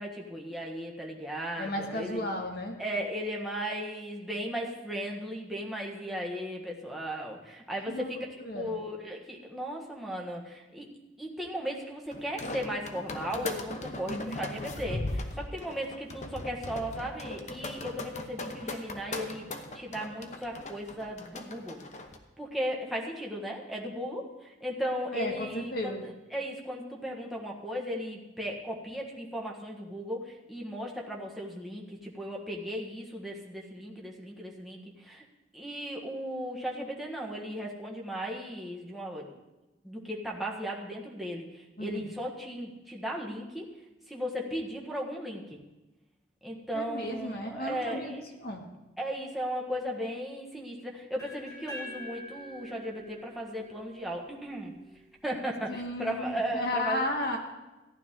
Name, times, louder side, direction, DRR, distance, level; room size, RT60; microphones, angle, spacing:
voice 1, 0.0-2.3 2.8-8.2 8.5-10.8 11.2-21.8 22.4-35.2 35.5-39.3 39.8-43.7 44.1-45.6 46.4-48.2 49.0-54.7 55.2-57.0, equal, ahead, -2 dB, 1.5 m, -36 dB
voice 2, 1.6-2.8 7.9-8.1 8.4-8.8 14.1-14.4 25.1-26.0 41.8-42.1 46.7-48.6 55.7-57.4, left 1 dB, 55° left, 1 dB, 1.9 m, -34 dB
sound 1, 12.1-22.2, left 2 dB, 40° left, 1.0 m, -38 dB
sound 2, 51.2-55.1, left 1 dB, 20° left, 3.8 m, -46 dB
14.5 x 10.5 x 3.8 m, 1.1 s
head